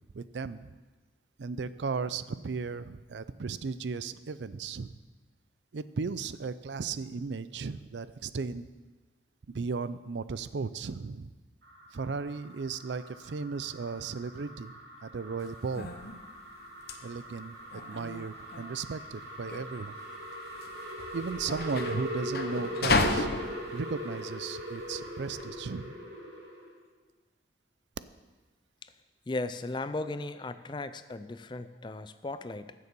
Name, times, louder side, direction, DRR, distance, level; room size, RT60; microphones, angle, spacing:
voice 1, 0.1-0.7 1.4-5.0 5.7-8.7 9.5-11.3 11.9-15.9 17.0-20.0 21.1-23.3 23.7-26.0, right 4 dB, 85° right, 15 dB, 0.5 m, -36 dB
sound 1, 11.6-26.8, equal, 65° right, 2.7 m, -41 dB
sound 2, 15.4-25.5, left 3 dB, 60° left, 0.9 m, -34 dB
voice 2, 29.3-32.7, left 2 dB, 25° left, 12 dB, 0.4 m, -36 dB
15.0 x 6.8 x 5.4 m, 1.3 s
head